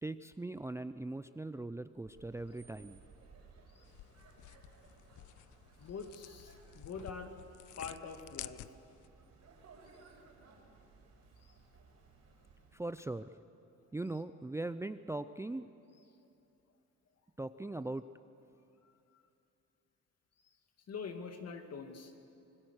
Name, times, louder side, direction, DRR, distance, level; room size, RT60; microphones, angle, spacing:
voice 1, 0.0-3.0 12.7-13.4 13.9-15.7 17.4-18.0, right 2 dB, 10° right, 12 dB, 0.5 m, -40 dB
sound 1, 1.9-13.1, right 4 dB, 60° right, 5.3 m, -60 dB
sound 2, 3.8-9.1, left 16 dB, 80° left, 0.5 m, -52 dB
voice 2, 5.8-7.3 7.8-8.6 11.4-11.6 18.8-19.2 20.9-22.1, left 5 dB, 55° left, 5 dB, 2.2 m, -45 dB
25.5 x 19.5 x 6.5 m, 2.7 s
cardioid pair, 90°, 30 cm